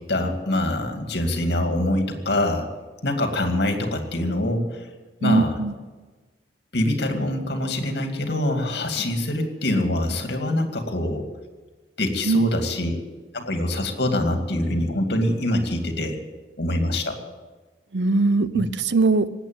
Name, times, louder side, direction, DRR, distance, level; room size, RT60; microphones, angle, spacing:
voice 1, 0.0-2.7 3.0-4.9 5.2-5.6 6.7-11.3 12.0-13.0 13.3-16.2 16.6-17.2, left 1 dB, 65° left, 5 dB, 2.4 m, -24 dB
voice 2, 5.2-5.7 12.3-12.5 17.9-19.3, right 3 dB, 70° right, 15 dB, 0.7 m, -21 dB
19.0 x 8.4 x 9.1 m, 1.3 s
head